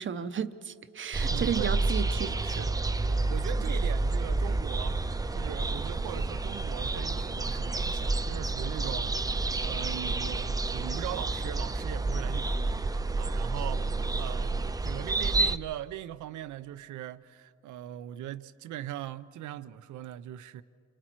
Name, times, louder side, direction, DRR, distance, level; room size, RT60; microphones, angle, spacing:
voice 1, 0.0-2.4, right 8 dB, 40° right, 0.8 m, -33 dB
sound 1, 1.1-15.6, right 3 dB, 10° right, 0.4 m, -29 dB
voice 2, 1.3-1.8 2.4-12.8 13.2-20.6, right 12 dB, 75° right, 0.7 m, -40 dB
28.0 x 24.0 x 4.5 m
cardioid pair, 90°, 30 cm